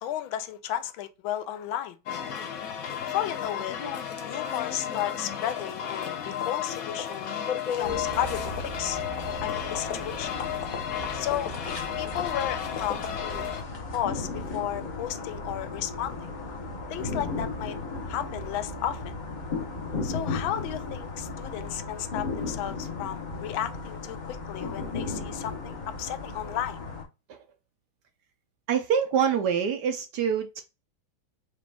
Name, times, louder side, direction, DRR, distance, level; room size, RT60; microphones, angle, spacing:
voice 1, 0.0-2.0 3.0-3.8 4.2-7.3 7.8-9.0 9.4-10.4 11.1-13.4 13.9-16.3 16.9-17.8 18.1-19.1 20.0-26.8, left 11 dB, 80° left, 1.3 m, -33 dB
sound 1, 2.1-13.6, left 8 dB, 60° left, 0.9 m, -33 dB
sound 2, 7.8-27.0, left 3 dB, 35° left, 0.7 m, -36 dB
voice 2, 28.7-30.6, right 7 dB, 70° right, 1.0 m, -25 dB
4.9 x 2.5 x 3.3 m
omnidirectional pair, 2.2 m